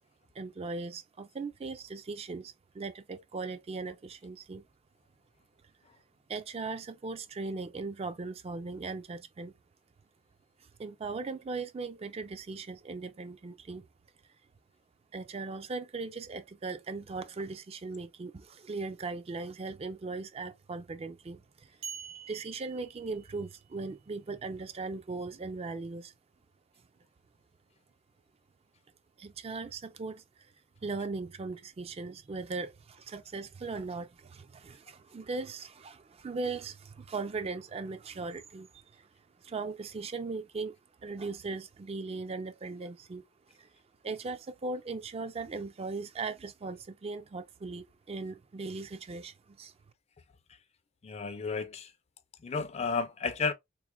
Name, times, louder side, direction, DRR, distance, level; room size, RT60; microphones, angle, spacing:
voice 1, 0.4-4.6 6.3-9.5 10.8-13.9 15.1-21.7 22.3-26.1 29.2-30.5 30.8-39.1 39.4-40.8 41.0-43.2 43.5-43.7 44.0-49.7, right 3 dB, 30° right, 0.3 m, -38 dB
sound 1, 21.8-23.7, right 6 dB, 75° right, 1.3 m, -45 dB
voice 2, 51.0-51.9 52.4-53.5, left 4 dB, 35° left, 0.4 m, -32 dB
3.8 x 3.0 x 2.3 m
head